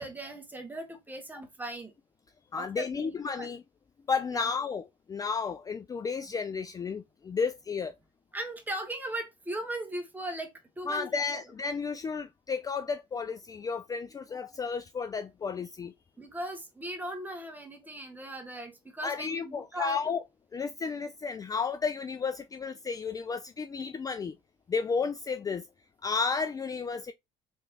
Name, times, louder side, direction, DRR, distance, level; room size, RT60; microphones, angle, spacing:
voice 1, 0.0-1.9 2.6-3.5 4.3-4.5 8.3-10.5 10.8-11.4 16.2-20.0, right 1 dB, 10° right, 1.3 m, -38 dB
voice 2, 2.5-3.6 4.1-7.9 10.9-15.9 19.0-20.2 20.5-24.4 24.7-25.7 26.0-27.1, left 5 dB, 25° left, 0.4 m, -32 dB
3.6 x 3.1 x 2.4 m
supercardioid pair, 75°, 14 cm